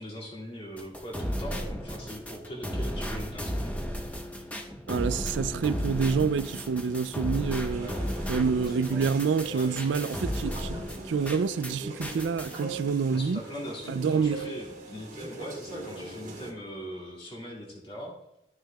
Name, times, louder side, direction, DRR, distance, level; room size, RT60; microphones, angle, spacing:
voice 1, 0.0-3.8 7.7-8.1 8.8-9.1 9.5-9.7 13.1-18.2, equal, 30° left, 2.1 m, -40 dB
sound 1, 0.8-11.7 12.0-12.6, equal, 10° left, 0.9 m, -34 dB
voice 2, 4.9-7.9 8.3-10.8 11.1-13.4 13.9-14.5, right 5 dB, 90° right, 0.4 m, -27 dB
sound 2, 7.7-16.5, right 2 dB, 45° right, 1.6 m, -42 dB
13.0 x 6.4 x 2.3 m
head